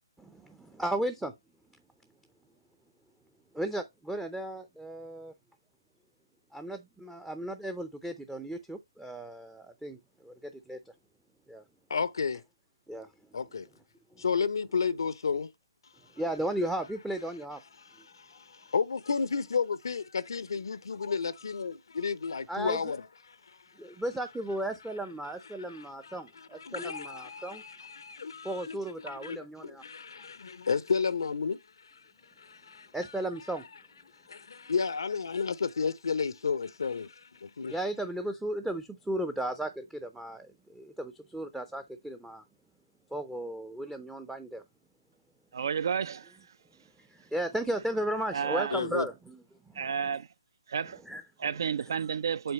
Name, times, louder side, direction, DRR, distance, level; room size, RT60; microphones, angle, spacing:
voice 1, 0.2-1.3 3.5-5.3 6.5-10.8 11.5-11.6 12.9-13.1 16.2-17.6 22.5-22.8 23.8-27.6 28.4-29.8 32.9-33.6 37.7-42.4 43.1-44.6 47.0-49.8 51.1-51.2, right 1 dB, 5° right, 0.5 m, -35 dB
voice 2, 11.9-12.4 13.3-13.7 14.2-15.5 18.2-23.4 25.7-28.8 29.1-31.6 32.4-32.9 34.3-37.8 48.7-49.1, left 5 dB, 65° left, 0.6 m, -32 dB
voice 3, 45.5-46.4 48.3-48.8 49.7-50.3 50.7-51.0 51.4-52.5, right 7 dB, 55° right, 0.5 m, -31 dB
7.8 x 4.5 x 3.0 m
figure-of-eight pair, 140°, 3 cm